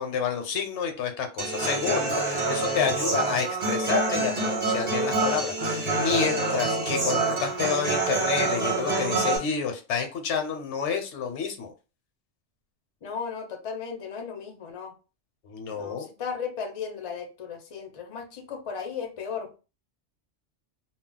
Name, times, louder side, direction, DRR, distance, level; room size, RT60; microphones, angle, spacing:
voice 1, 0.0-11.7 15.4-16.1, left 6 dB, 80° left, 4 dB, 0.9 m, -29 dB
Human voice / Acoustic guitar, 1.4-9.4, right 3 dB, 35° right, 0.9 m, -26 dB
voice 2, 13.0-14.9 15.7-19.6, left 6 dB, 45° left, 4 dB, 0.5 m, -35 dB
2.3 x 2.0 x 3.7 m, 0.32 s
omnidirectional pair, 1.2 m